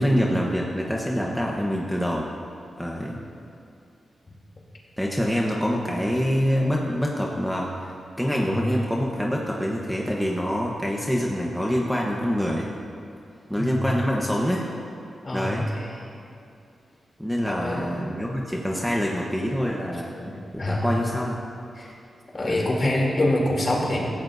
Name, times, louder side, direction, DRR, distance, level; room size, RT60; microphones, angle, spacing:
voice 1, 0.0-2.3 2.8-3.2 5.0-12.7 13.5-14.7 15.3-15.7 17.2-20.1 20.7-21.5 22.5-22.8, equal, ahead, -2 dB, 1.1 m, -25 dB
voice 2, 8.3-8.7 13.5-13.9 15.2-16.0 17.4-18.0 20.2-20.9 21.7-21.9 22.3-24.0, left 1 dB, 40° left, -3 dB, 3.1 m, -26 dB
17.5 x 15.0 x 2.7 m, 2.5 s
wide cardioid pair, 95°, 0 cm